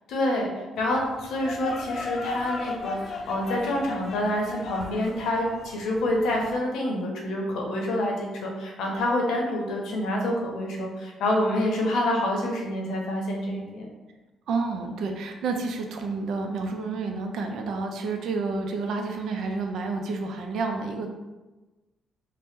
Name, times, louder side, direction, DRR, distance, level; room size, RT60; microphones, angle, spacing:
voice 1, 0.1-0.5 0.8-13.9, left 1 dB, 80° left, 0 dB, 0.7 m, -27 dB
sound 1, 0.8-6.6, left 3 dB, 45° left, 0.3 m, -36 dB
voice 2, 14.5-21.1, right 4 dB, 75° right, 4 dB, 0.4 m, -30 dB
2.7 x 2.0 x 3.5 m, 1.2 s
cardioid pair, 90°, 0 cm